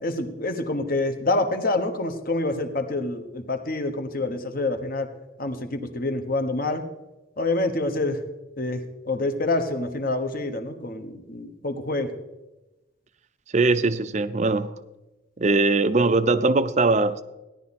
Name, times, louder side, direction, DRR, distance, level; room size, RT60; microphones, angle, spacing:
voice 1, 0.0-5.1 5.4-6.8 7.4-8.2 8.6-12.1, left 2 dB, 45° left, 1.2 m, -27 dB
voice 2, 13.5-14.7 15.4-17.2, right 3 dB, 35° right, 0.5 m, -21 dB
16.5 x 11.0 x 4.2 m
head